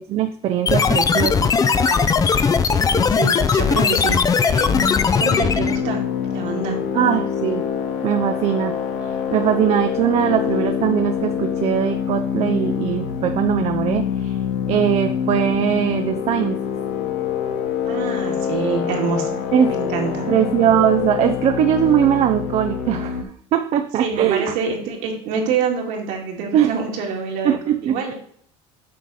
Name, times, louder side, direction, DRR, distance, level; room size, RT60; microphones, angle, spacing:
voice 1, 0.0-1.5 6.9-7.6 8.0-8.8 9.3-14.4 14.7-16.6 19.5-19.7 20.3-23.2 23.5-24.5 26.5-26.7 27.4-28.1, right 10 dB, 45° right, 7 dB, 0.5 m, -20 dB
sound 1, 0.7-5.8, left 5 dB, 25° left, 0.5 m, -18 dB
voice 2, 1.6-2.2 2.7-4.8 5.2-6.0 6.3-6.8 17.9-19.4 19.7-20.3 24.0-28.1, right 5 dB, 70° right, 0 dB, 2.0 m, -26 dB
sound 2, 4.7-23.2, left 8 dB, 75° left, 0.9 m, -25 dB
7.6 x 3.1 x 5.4 m, 0.63 s
supercardioid pair, 105°, 15 cm